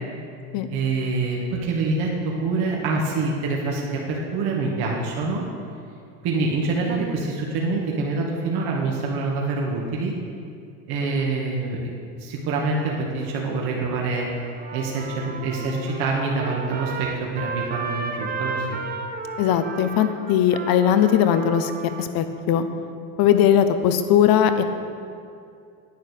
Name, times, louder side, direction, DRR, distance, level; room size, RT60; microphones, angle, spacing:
voice 1, 0.7-5.4 6.2-10.1 10.9-11.8 12.2-14.3 14.7-18.8, right 3 dB, 55° right, -2 dB, 2.1 m, -25 dB
Trumpet, 14.4-22.1, right 4 dB, 20° right, 1.2 m, -33 dB
voice 2, 19.4-21.7 22.0-22.6 23.2-24.6, left 9 dB, 55° left, 9 dB, 1.1 m, -19 dB
10.5 x 9.0 x 6.7 m, 2.4 s
supercardioid pair, 105°, 44 cm